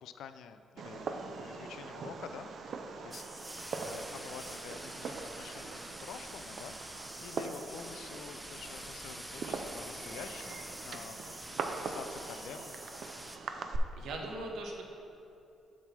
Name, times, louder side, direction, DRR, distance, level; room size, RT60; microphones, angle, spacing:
voice 1, 0.0-3.2 3.7-12.8, left 7 dB, 80° left, 10 dB, 0.4 m, -49 dB
Fireworks, 0.8-13.8, right 4 dB, 60° right, 0.5 m, -42 dB
sound 1, 3.1-13.4, equal, 5° right, 0.5 m, -46 dB
voice 2, 14.0-14.8, right 2 dB, 80° right, 1 dB, 1.0 m, -40 dB
7.2 x 4.0 x 5.9 m, 2.7 s
cardioid pair, 90°, 0 cm